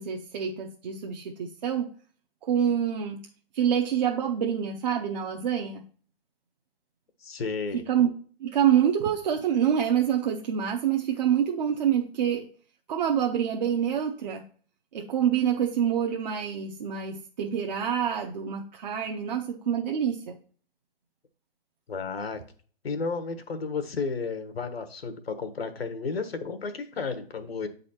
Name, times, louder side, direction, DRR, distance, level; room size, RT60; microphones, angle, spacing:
voice 1, 0.0-1.9 2.4-3.2 3.5-5.8 7.7-8.1 8.4-12.5 12.9-14.4 14.9-20.4, right 9 dB, 45° right, 2 dB, 0.8 m, -26 dB
voice 2, 7.2-7.8 21.9-22.4 22.8-27.7, left 4 dB, 90° left, 10 dB, 1.2 m, -32 dB
7.8 x 4.2 x 4.2 m, 0.43 s
hypercardioid pair, 150°, 29 cm